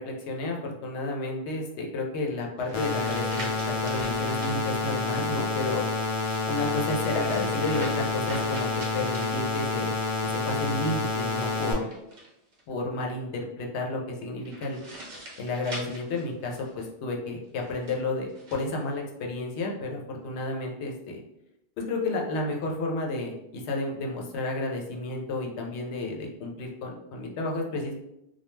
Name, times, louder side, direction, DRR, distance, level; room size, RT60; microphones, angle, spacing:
voice 1, 0.0-5.8 6.4-9.9 10.3-11.9 12.7-14.8 15.4-21.2 21.8-27.9, left 2 dB, 85° left, 0 dB, 0.9 m, -31 dB
sound 1, 2.6-4.6 6.0-9.9 11.3-12.6 14.4-16.9 17.6-18.6, right 1 dB, 45° right, 0.8 m, -43 dB
sound 2, 2.7-11.7, left 3 dB, 55° left, 0.3 m, -29 dB
2.3 x 2.1 x 3.0 m, 0.85 s
omnidirectional pair, 1.1 m